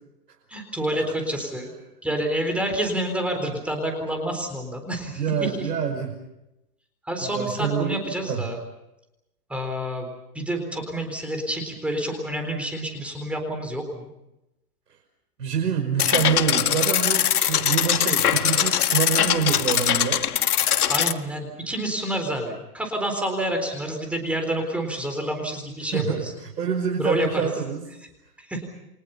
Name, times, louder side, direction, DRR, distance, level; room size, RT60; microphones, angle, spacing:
voice 1, 0.5-1.7 2.0-5.5 7.1-8.6 9.5-14.1 20.9-26.3 27.0-27.3 28.5-28.7, right 1 dB, 5° right, 3 dB, 3.9 m, -28 dB
voice 2, 5.0-6.1 7.2-8.0 8.3-8.4 15.4-20.2 25.9-27.9, right 7 dB, 85° right, 2 dB, 5.6 m, -26 dB
sound 1, 16.0-21.1, left 10 dB, 70° left, 1.6 m, -22 dB
30.0 x 25.0 x 5.7 m, 0.89 s
hypercardioid pair, 160°, 47 cm